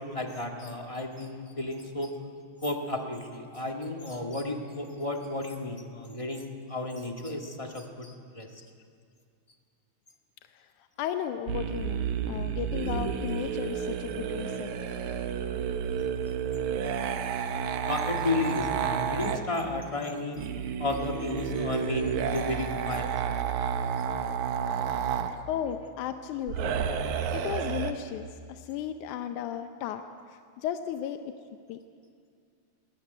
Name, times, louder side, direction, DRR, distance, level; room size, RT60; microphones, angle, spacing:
voice 1, 0.0-2.1 2.6-8.6 17.8-20.5 20.8-23.1, left 2 dB, 15° left, 2 dB, 1.1 m, -33 dB
voice 2, 11.0-14.7 25.5-26.8 27.3-31.3 31.7-31.8, left 9 dB, 90° left, 7 dB, 2.3 m, -35 dB
sound 1, 11.5-19.4 20.4-25.4 26.5-27.9, right 7 dB, 80° right, 2.5 m, -31 dB
21.0 x 18.5 x 9.2 m, 2.2 s
omnidirectional pair, 3.4 m